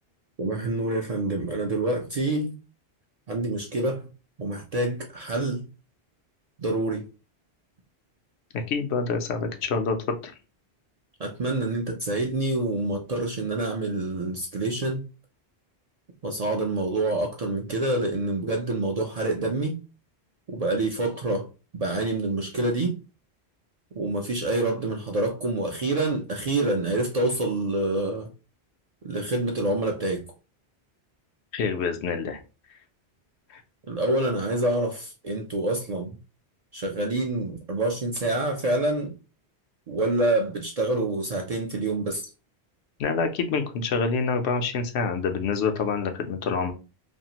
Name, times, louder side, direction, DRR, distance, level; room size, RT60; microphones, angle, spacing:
voice 1, 0.4-2.5 3.3-4.0 4.4-5.7 6.6-7.0 11.2-15.0 16.2-19.8 20.5-21.5 21.7-22.9 23.9-28.3 29.0-30.2 33.9-36.2 36.7-39.1 39.9-42.3, right 2 dB, 55° right, 0.4 m, -27 dB
voice 2, 8.5-10.3 31.5-32.4 33.5-33.6 43.0-46.7, left 5 dB, 90° left, 0.9 m, -27 dB
2.6 x 2.4 x 2.8 m
omnidirectional pair, 1.1 m